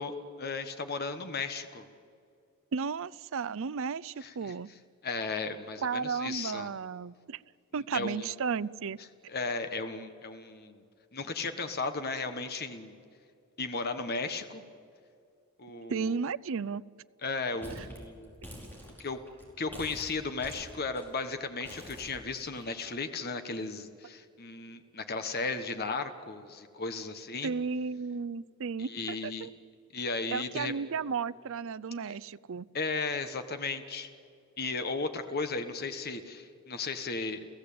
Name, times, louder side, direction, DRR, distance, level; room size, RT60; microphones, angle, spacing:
voice 1, 0.0-1.9 4.2-4.5 5.0-6.7 7.7-8.3 9.3-10.8 11.1-13.0 13.6-14.6 15.6-16.1 17.2-18.3 19.0-19.2 19.6-27.5 28.8-29.5 29.9-30.7 32.1-32.2 32.7-34.1 34.6-37.5, left 3 dB, 45° left, 8 dB, 1.4 m, -35 dB
voice 2, 2.7-4.7 5.8-7.4 7.7-9.0 15.9-16.8 27.4-29.5 30.3-32.7, right 5 dB, 60° right, 19 dB, 0.5 m, -34 dB
sound 1, 17.6-18.0 18.2-19.4 19.7-21.1 21.6-22.9, equal, 10° left, 4.7 m, -46 dB
29.5 x 16.0 x 8.6 m, 2.3 s
head